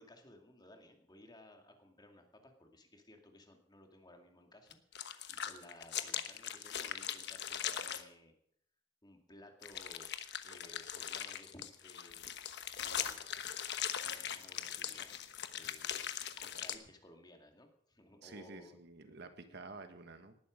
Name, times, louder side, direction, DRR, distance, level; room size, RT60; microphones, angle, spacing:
voice 1, 0.0-8.3 9.0-10.1 10.4-12.4 12.7-13.3 14.0-15.1 15.5-18.8 19.1-19.2, left 1 dB, 20° left, 4 dB, 2.4 m, -58 dB
sound 1, 4.7-8.0 9.6-16.8, left 9 dB, 60° left, 1.2 m, -40 dB
voice 2, 18.2-20.3, right 3 dB, 60° right, 8 dB, 1.6 m, -50 dB
19.0 x 11.5 x 5.2 m, 0.69 s
head